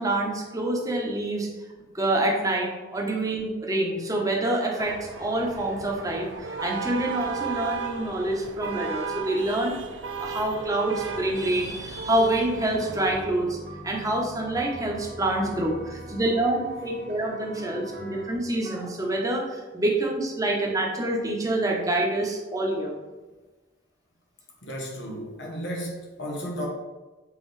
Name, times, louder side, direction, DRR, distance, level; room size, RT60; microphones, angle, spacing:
voice 1, 0.0-1.5 1.9-9.7 10.2-13.6 13.8-22.9, right 1 dB, 20° right, -1 dB, 1.0 m, -26 dB
sound 1, 4.8-13.2, right 5 dB, 80° right, 0.5 m, -35 dB
sound 2, 11.0-18.4, right 1 dB, 65° right, 1.7 m, -43 dB
voice 2, 24.6-26.7, equal, 70° left, -1 dB, 1.1 m, -34 dB
7.5 x 3.8 x 3.3 m, 1.2 s
head